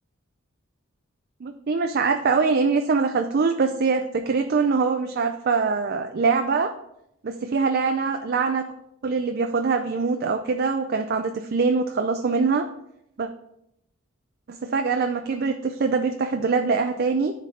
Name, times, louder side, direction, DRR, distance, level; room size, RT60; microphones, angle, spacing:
voice 1, 1.4-6.7 7.2-8.6 9.0-12.7 13.2-13.3 14.5-17.3, right 4 dB, 50° right, 6 dB, 0.4 m, -23 dB
10.5 x 4.0 x 4.1 m, 0.79 s
head